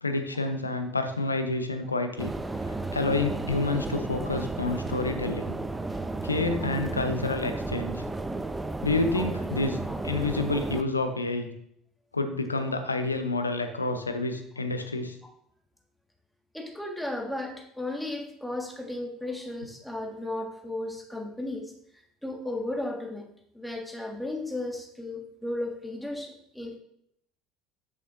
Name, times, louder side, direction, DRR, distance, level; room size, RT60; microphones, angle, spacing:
voice 1, 0.0-2.3 2.7-5.5 6.2-8.0 8.8-9.8 10.0-11.5 12.1-15.2, left 2 dB, 85° left, 8 dB, 0.6 m, -29 dB
sound 1, 2.2-10.8, right 2 dB, 15° right, 0.5 m, -33 dB
voice 2, 16.5-21.7 22.2-23.3 23.5-26.8, left 1 dB, 5° left, 1 dB, 1.6 m, -35 dB
8.6 x 6.7 x 2.6 m, 0.71 s
figure-of-eight pair, 65°, 0 cm